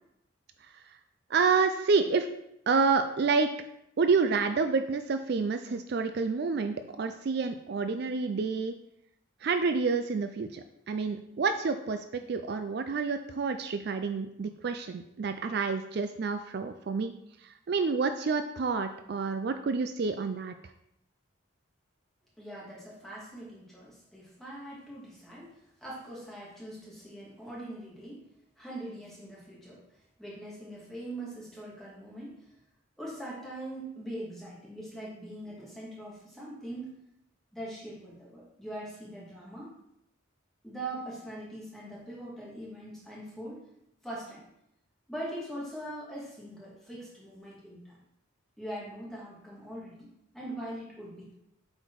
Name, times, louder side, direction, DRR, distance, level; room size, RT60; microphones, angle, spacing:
voice 1, 1.3-2.3 2.7-3.5 4.0-8.7 9.4-17.1 17.4-20.5, right 4 dB, 55° right, 8 dB, 0.4 m, -28 dB
voice 2, 22.4-28.2 28.6-29.8 30.2-32.5 33.0-37.0 37.5-39.7 40.6-43.7 44.0-44.4 45.1-48.0 48.6-50.1 50.3-51.3, right 1 dB, ahead, -6 dB, 2.2 m, -42 dB
7.7 x 4.2 x 4.7 m, 0.78 s
head